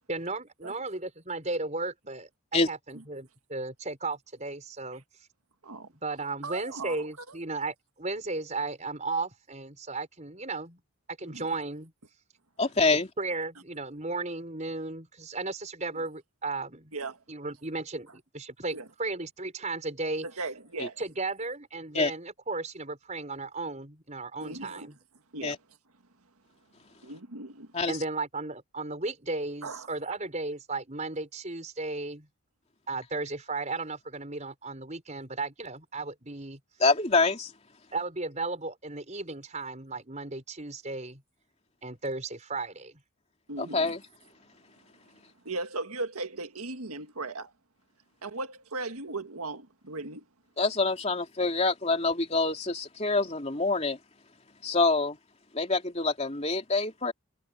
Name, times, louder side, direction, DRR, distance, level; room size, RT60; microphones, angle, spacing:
voice 1, 0.1-5.0 6.0-10.8 11.2-11.9 13.2-16.9 17.3-20.3 21.0-25.0 27.9-32.3 32.9-36.6 37.9-41.2 41.8-43.0, right 3 dB, 30° right, 5.7 m, -35 dB
voice 2, 6.4-7.1 11.2-11.5 16.9-17.2 18.7-18.9 20.2-21.0 24.4-24.9 25.3-25.6 27.0-27.7 29.6-29.9 43.5-43.9 45.4-47.5 48.2-50.2, right 3 dB, 85° right, 1.9 m, -37 dB
voice 3, 12.6-13.1 20.8-20.9 21.9-22.1 25.4-25.6 27.7-28.0 36.8-37.5 43.6-44.0 50.6-54.0 54.6-55.2 55.5-57.1, left 3 dB, 30° left, 3.0 m, -26 dB
head